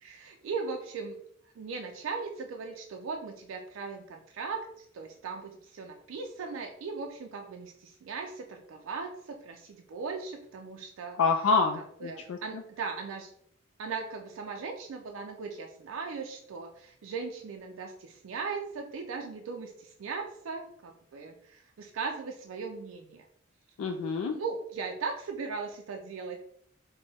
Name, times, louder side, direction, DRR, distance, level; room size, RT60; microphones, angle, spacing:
voice 1, 0.0-1.2 1.6-11.2 11.7-13.3 13.8-23.3 24.3-26.4, right 4 dB, 80° right, 3 dB, 0.4 m, -38 dB
voice 2, 11.2-12.4 23.8-24.4, left 4 dB, 85° left, 4 dB, 0.3 m, -27 dB
4.1 x 2.1 x 3.4 m, 0.71 s
head